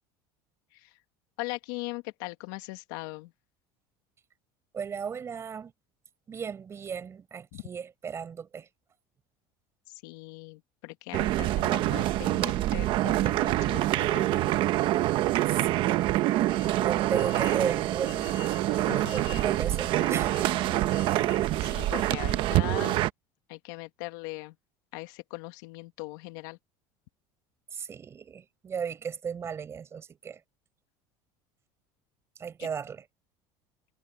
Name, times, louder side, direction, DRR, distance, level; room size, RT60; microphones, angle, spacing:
voice 1, 1.4-3.3 7.5-7.6 10.0-14.6 18.7-19.2 21.3-23.0 23.5-24.5 24.9-26.6 32.6-32.7, left 23 dB, 80° left, 2.1 m, -40 dB
voice 2, 4.7-5.7 6.3-8.7 16.8-18.2 18.8-20.8 27.7-30.4 32.4-33.0, right 7 dB, 25° right, 6.1 m, -35 dB
sound 1, 11.1-23.1, right 15 dB, 50° right, 1.0 m, -26 dB
sound 2, 16.4-22.3, left 16 dB, 55° left, 4.3 m, -47 dB
cardioid pair, 145°, 11 cm